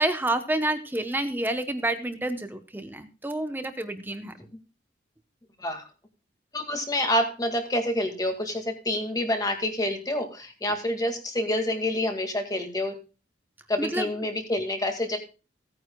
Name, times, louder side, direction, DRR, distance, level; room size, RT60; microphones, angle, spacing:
voice 1, 0.0-4.3 13.8-14.0, right 1 dB, 10° right, 8 dB, 0.8 m, -28 dB
voice 2, 6.5-12.9 13.7-15.2, left 1 dB, 20° left, 4 dB, 1.9 m, -27 dB
17.5 x 9.3 x 2.3 m, 0.32 s
head